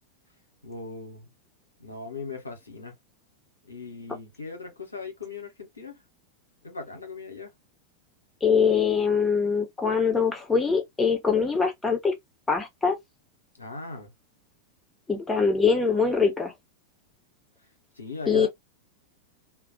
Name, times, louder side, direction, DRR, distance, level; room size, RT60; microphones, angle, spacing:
voice 1, 0.6-1.3 1.8-2.9 3.7-6.0 6.6-7.5 13.6-14.1 18.0-18.5, left 4 dB, 80° left, 0.8 m, -39 dB
voice 2, 8.4-12.1 12.5-13.0 15.1-16.5 18.3-18.5, left 5 dB, 10° left, 0.8 m, -23 dB
2.3 x 2.1 x 2.5 m
figure-of-eight pair, 90°, 0 cm